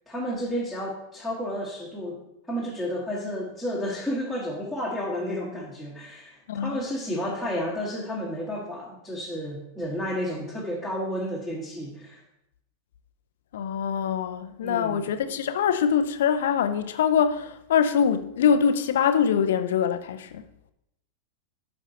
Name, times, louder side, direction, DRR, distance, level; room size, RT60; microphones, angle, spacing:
voice 1, 0.1-12.2 14.6-15.1, equal, 5° right, 1.8 m, -31 dB
voice 2, 6.5-6.9 13.5-20.4, left 7 dB, 60° left, 0.6 m, -24 dB
13.0 x 5.4 x 3.0 m
figure-of-eight pair, 90°, 0 cm